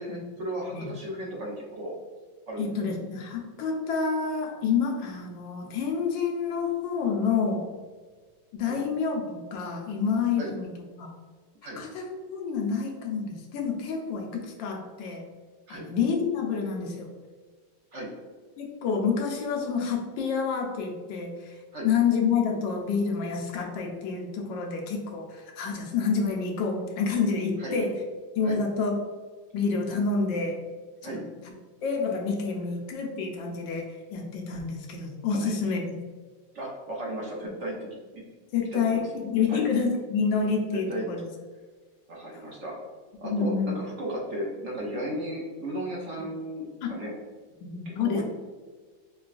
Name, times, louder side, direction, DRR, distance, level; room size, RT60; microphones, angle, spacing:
voice 1, 0.0-1.9 2.5-2.9 8.6-8.8 10.4-10.5 11.6-11.8 15.7-15.9 17.9-18.1 21.7-21.9 27.6-27.8 28.4-28.6 31.0-31.2 35.3-35.6 36.5-37.9 38.1-38.2 38.7-39.0 39.5-39.7 40.9-41.1 42.1-42.7 43.2-47.1 47.8-48.2, right 1 dB, 60° right, -3 dB, 0.8 m, -35 dB
voice 2, 2.6-7.7 8.5-10.7 11.0-11.1 11.8-15.2 15.7-17.1 18.6-21.5 21.8-28.0 28.3-29.0 29.5-30.6 31.0-31.2 31.8-36.0 38.5-41.2 42.3-42.5 43.2-43.7 46.8-47.0 47.6-48.2, left 5 dB, 80° left, 1 dB, 1.3 m, -28 dB
4.9 x 2.2 x 2.4 m, 1.4 s
omnidirectional pair, 2.0 m